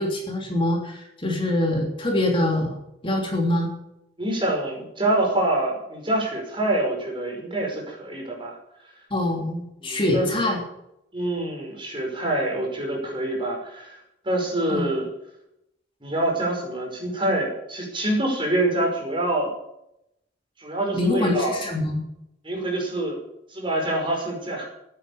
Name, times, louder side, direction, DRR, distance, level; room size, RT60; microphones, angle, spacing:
voice 1, 0.0-2.7 3.0-3.7 9.1-10.6 14.7-14.9 20.9-22.0, left 1 dB, 30° left, 0 dB, 3.2 m, -24 dB
voice 2, 4.2-8.6 9.8-10.3 11.1-15.1 16.0-19.5 20.6-21.5 22.4-23.1 23.5-24.6, right 1 dB, 25° right, 0 dB, 5.5 m, -26 dB
15.0 x 9.9 x 7.1 m, 0.82 s
head